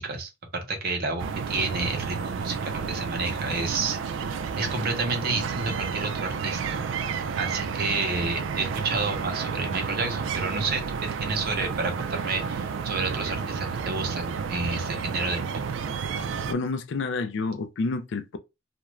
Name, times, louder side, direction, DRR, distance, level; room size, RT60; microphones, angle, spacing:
voice 1, 0.0-4.3 4.6-6.8 7.4-15.6, right 3 dB, 55° right, 0.7 m, -30 dB
sound 1, 1.2-16.5, right 6 dB, 75° right, 0.3 m, -31 dB
voice 2, 16.1-18.4, left 3 dB, 65° left, 0.4 m, -30 dB
2.4 x 2.1 x 3.0 m
head